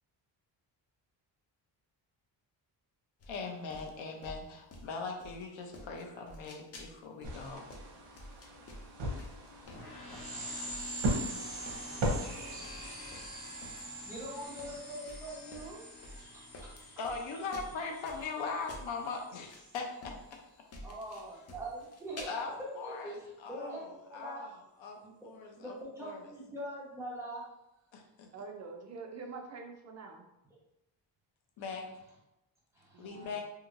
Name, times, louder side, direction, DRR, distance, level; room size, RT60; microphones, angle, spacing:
sound 1, 3.2-5.5 5.7-19.1 19.5-19.6 20.0-20.4 20.7-22.2, left 1 dB, 35° left, 0.5 m, -50 dB
voice 1, 3.3-7.6 16.0-16.3 17.0-20.1 22.3-26.2 27.9-28.3 31.6-31.9 33.0-33.4, left 4 dB, 80° left, 2 dB, 0.7 m, -40 dB
Tom Punch sounds, 7.2-12.5, right 1 dB, 70° right, 0.8 m, -37 dB
sound 2, 9.6-19.8, right 1 dB, 55° left, 1.2 m, -45 dB
voice 2, 14.1-15.8 20.8-24.4 25.0-25.3 25.5-27.4 32.7-33.1, right 1 dB, 5° right, -7 dB, 1.0 m, -43 dB
voice 3, 28.3-30.3 32.9-33.4, right 4 dB, 40° right, 3 dB, 0.4 m, -45 dB
2.8 x 2.8 x 2.5 m, 0.89 s
cardioid pair, 125°, 45 cm